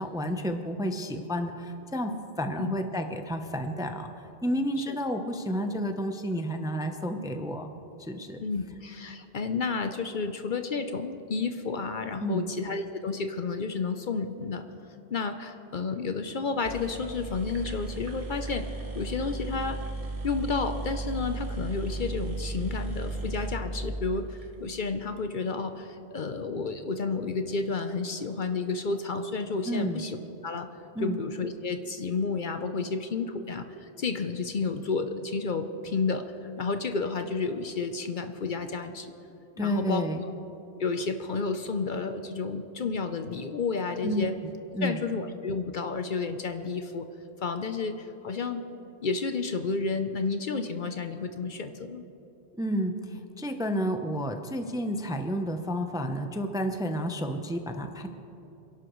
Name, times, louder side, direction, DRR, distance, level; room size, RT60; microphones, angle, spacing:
voice 1, 0.0-7.7 8.0-8.4 12.2-12.5 29.7-30.0 30.9-31.2 39.6-40.2 44.0-45.0 52.6-58.1, equal, 5° right, 6 dB, 0.6 m, -31 dB
voice 2, 4.8-5.2 8.4-14.6 15.1-18.7 18.9-19.8 20.2-30.2 30.4-30.7 31.0-39.1 39.6-40.3 40.8-44.3 44.8-47.1 47.4-48.6 49.0-52.0, left 4 dB, 55° left, 7 dB, 0.8 m, -31 dB
sound 1, 16.4-16.5 16.6-24.5, right 2 dB, 35° right, 1.1 m, -35 dB
27.5 x 11.5 x 3.1 m, 2.9 s
omnidirectional pair, 1.1 m